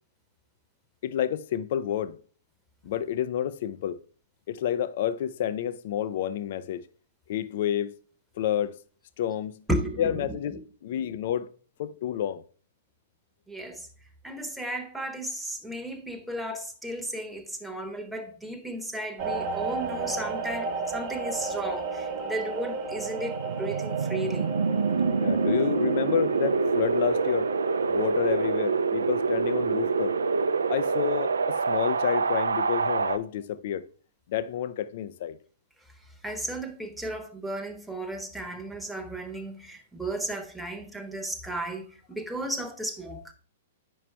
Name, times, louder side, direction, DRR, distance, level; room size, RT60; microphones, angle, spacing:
voice 1, 1.0-2.2 2.8-4.0 4.5-6.8 7.3-7.9 8.4-8.7 9.2-9.5 10.0-11.5 11.8-12.4 25.2-27.5 27.9-30.1 30.7-33.8 34.3-35.4, left 10 dB, 55° left, 0.4 m, -29 dB
voice 2, 9.7-10.6 11.0-11.1 13.5-13.9 14.2-24.5 36.2-43.3, right 1 dB, ahead, 0.9 m, -34 dB
sound 1, 19.2-30.5 30.9-31.2, right 4 dB, 35° right, 1.0 m, -34 dB
Wind, 23.0-33.2, right 4 dB, 80° right, 0.3 m, -26 dB
4.9 x 4.6 x 4.5 m
figure-of-eight pair, 115°, 0 cm